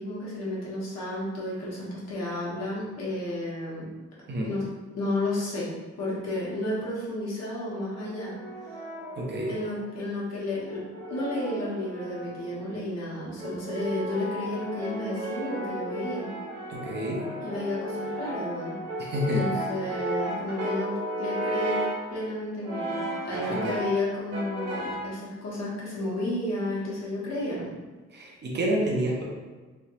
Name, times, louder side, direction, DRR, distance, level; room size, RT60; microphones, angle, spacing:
voice 1, 0.0-3.9 4.4-4.6 4.9-5.7 6.0-8.3 8.7-8.8 9.5-10.8 11.1-16.3 17.4-21.8 22.1-27.7, left 1 dB, 65° left, -6 dB, 1.2 m, -32 dB
Brass instrument, 8.0-9.9 10.7-12.7 13.4-22.1 22.6-24.0 24.3-25.1, right 1 dB, 60° right, 0.9 m, -34 dB
voice 2, 9.2-9.5 16.7-17.2 19.0-19.5 23.5-23.7 28.1-29.2, equal, 35° right, -3 dB, 0.6 m, -28 dB
3.2 x 2.8 x 2.8 m, 1.3 s
wide cardioid pair, 180°, 29 cm